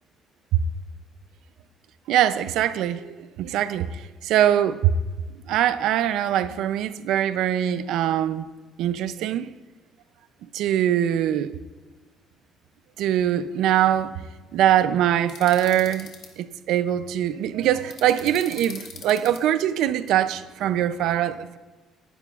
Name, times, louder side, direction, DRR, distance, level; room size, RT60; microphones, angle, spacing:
voice 1, 2.1-4.9 5.4-8.5 8.8-9.5 10.5-11.5 13.0-14.1 14.5-16.1 16.4-21.6, right 11 dB, 70° right, 0.5 m, -22 dB
sound 1, 15.3-16.3 17.9-19.4, left 7 dB, 55° left, 1.7 m, -41 dB
19.5 x 11.0 x 2.5 m
cardioid pair, 175°, 0 cm